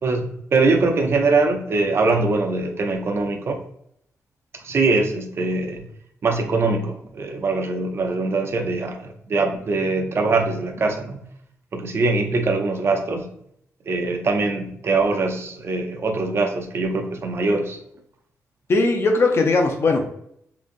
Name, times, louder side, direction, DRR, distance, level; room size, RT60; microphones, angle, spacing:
voice 1, 0.0-3.6 4.5-5.8 6.2-11.2 11.7-13.3 13.9-17.8, right 3 dB, 45° right, 4 dB, 0.5 m, -22 dB
voice 2, 18.7-20.1, left 3 dB, 45° left, 3 dB, 0.6 m, -19 dB
3.8 x 2.4 x 2.5 m, 0.71 s
cardioid pair, 100°, 6 cm